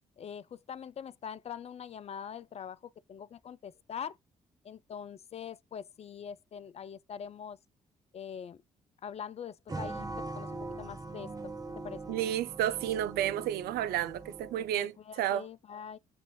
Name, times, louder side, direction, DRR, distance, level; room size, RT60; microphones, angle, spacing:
voice 1, 0.2-4.2 4.6-7.6 8.1-8.6 9.0-12.0 14.7-16.0, left 8 dB, 35° left, 0.4 m, -43 dB
sound 1, 9.7-14.8, right 3 dB, 20° right, 0.8 m, -41 dB
voice 2, 12.1-15.5, right 11 dB, 60° right, 0.4 m, -31 dB
6.9 x 2.6 x 2.9 m
figure-of-eight pair, 40°, 18 cm